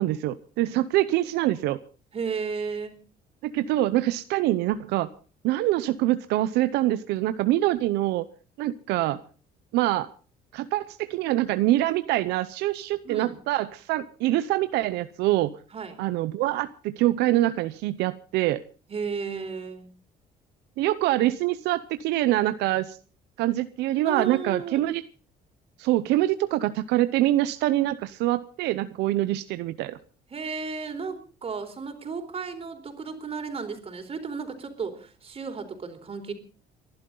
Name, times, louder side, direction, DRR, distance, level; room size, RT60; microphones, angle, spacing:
voice 1, 0.0-1.8 3.4-5.1 5.4-8.2 8.6-9.2 9.7-10.1 10.5-15.5 16.0-18.6 20.8-23.0 23.4-25.0 25.8-30.0, right 15 dB, 90° right, 12 dB, 0.8 m, -25 dB
voice 2, 2.1-3.0 13.0-13.4 15.7-16.0 18.9-19.9 24.0-24.8 30.3-36.3, right 5 dB, 35° right, 6 dB, 4.1 m, -34 dB
29.5 x 11.5 x 3.9 m, 0.38 s
cardioid pair, 110°, 17 cm